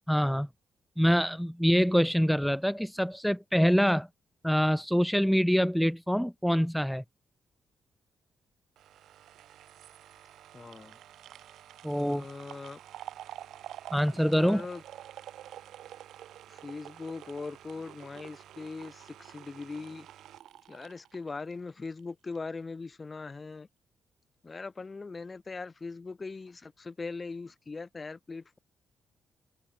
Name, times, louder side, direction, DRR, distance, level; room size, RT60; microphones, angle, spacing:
voice 1, 0.1-0.5 1.0-4.1 4.4-7.0 11.8-12.2 13.9-14.6, equal, ahead, 0.4 m, -25 dB
sound 1, 8.8-22.0 22.3-22.4, right 12 dB, 80° right, 2.7 m, -48 dB
voice 2, 10.5-11.0 11.9-12.8 14.1-14.8 16.5-20.1 20.7-23.7 24.4-28.6, left 4 dB, 35° left, 1.1 m, -41 dB
open air
supercardioid pair, 65°, 0 cm